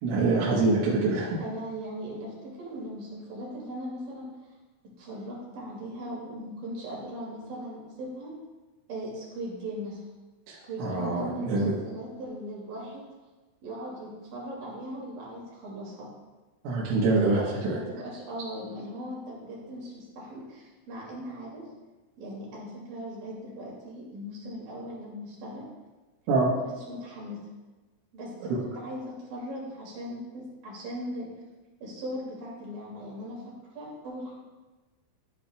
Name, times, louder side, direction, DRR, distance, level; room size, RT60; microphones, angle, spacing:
voice 1, 0.0-1.4 10.8-11.7 16.7-17.8 26.3-26.5, right 3 dB, 75° right, -6 dB, 3.8 m, -25 dB
voice 2, 1.4-4.3 5.0-8.3 8.9-10.0 10.6-13.0 13.6-16.1 17.7-21.6 22.2-25.7 26.5-27.4 28.1-31.3 31.8-33.4 33.8-34.3, equal, 50° right, -4 dB, 3.9 m, -39 dB
12.5 x 8.7 x 2.4 m, 1.2 s
omnidirectional pair, 5.9 m